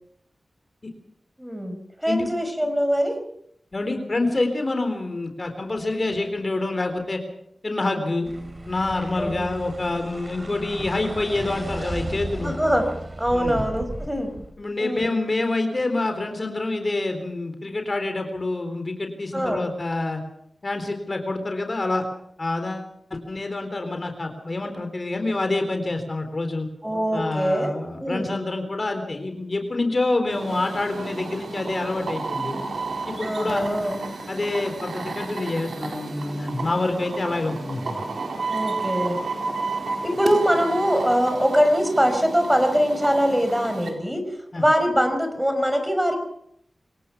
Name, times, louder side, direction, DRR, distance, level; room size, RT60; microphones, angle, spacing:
voice 1, 1.4-3.2 9.2-9.4 12.4-12.9 13.2-14.3 14.8-15.1 19.3-19.6 26.8-27.7 28.0-28.3 32.5-32.6 33.2-34.0 38.5-39.2 40.0-44.3 44.6-46.2, equal, 10° right, 6 dB, 5.4 m, -22 dB
voice 2, 3.7-7.2 7.6-8.3 8.7-12.5 13.3-13.6 14.6-20.2 20.6-22.1 22.4-26.7 27.1-32.6 33.1-33.7 34.3-38.0 44.5-44.6, left 2 dB, 45° left, 6 dB, 3.9 m, -27 dB
sound 1, 8.2-14.5, right 1 dB, 35° right, 4.8 m, -35 dB
sound 2, 30.3-43.9, right 3 dB, 85° right, 4.3 m, -32 dB
26.5 x 17.5 x 6.0 m, 0.71 s
cardioid pair, 55°, 0 cm